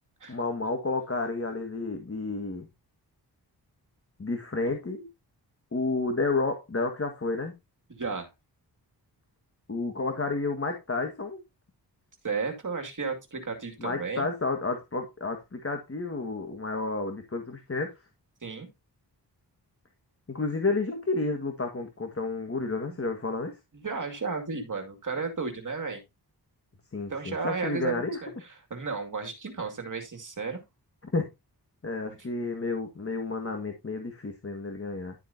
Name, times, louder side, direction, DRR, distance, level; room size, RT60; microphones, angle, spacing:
voice 1, 0.3-2.7 4.2-5.1 5.7-7.5 9.7-11.4 13.8-17.9 20.3-23.5 26.9-28.2 31.1-31.3 31.8-35.1, left 3 dB, 35° left, 1.8 m, -31 dB
voice 2, 7.9-8.3 12.2-14.3 18.4-18.7 22.9-23.0 23.7-26.0 27.1-30.6, right 4 dB, 50° right, 2.4 m, -33 dB
11.5 x 7.5 x 2.8 m
cardioid pair, 70°, 40 cm